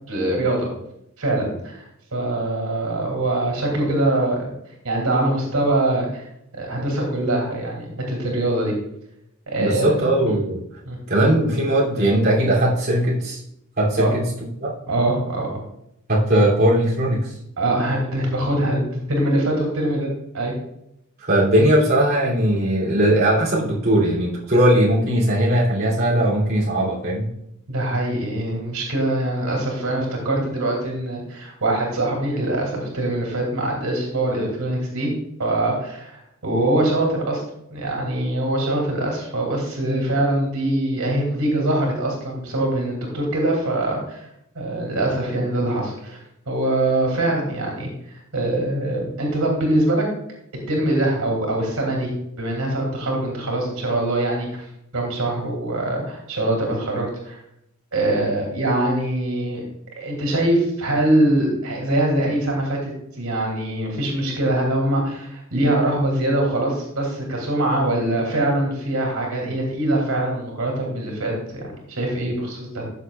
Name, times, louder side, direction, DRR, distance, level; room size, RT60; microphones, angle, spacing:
voice 1, 0.1-0.7 1.2-4.5 4.8-6.3 6.5-8.7 9.5-10.4 10.8-11.0 14.0-14.1 14.9-15.6 17.6-20.5 27.7-35.1 35.4-37.4 37.7-44.3 44.5-46.2 46.5-47.9 48.3-50.0 50.7-52.1 52.4-54.7 54.9-57.4 57.9-59.6 60.0-62.8 63.2-71.6 71.9-72.8, right 1 dB, 85° right, 0 dB, 2.9 m, -23 dB
voice 2, 9.6-10.6 11.1-13.4 13.8-14.2 14.6-14.7 16.1-17.3 21.3-27.3, right 1 dB, 45° right, -6 dB, 3.0 m, -19 dB
14.0 x 6.9 x 2.4 m, 0.79 s
head